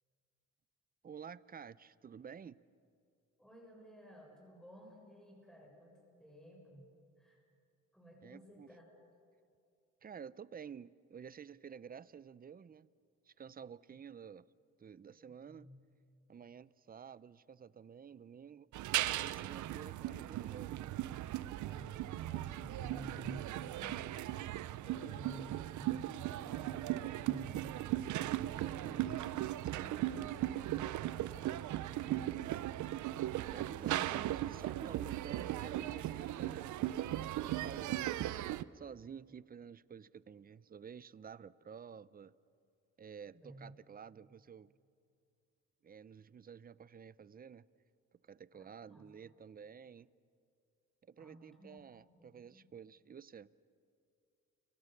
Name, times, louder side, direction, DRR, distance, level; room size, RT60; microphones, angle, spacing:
voice 1, 1.0-2.6 8.2-8.7 10.0-12.9 13.3-14.5 14.8-15.7 16.3-18.7 19.2-21.1 24.9-25.2 28.8-29.0 33.5-36.8 37.3-38.3 38.7-42.3 43.0-44.7 45.8-47.7 48.2-50.1 51.1-53.5, right 7 dB, 30° right, 0.6 m, -51 dB
voice 2, 3.4-6.9 7.2-7.4 7.9-8.8 15.2-15.8 21.6-24.2 24.8-27.8 28.5-32.6 43.2-43.8 48.6-49.1 51.2-52.7, equal, ahead, 6.6 m, -54 dB
sound 1, 18.7-38.6, right 14 dB, 75° right, 0.7 m, -38 dB
30.0 x 24.5 x 6.7 m
cardioid pair, 90°, 30 cm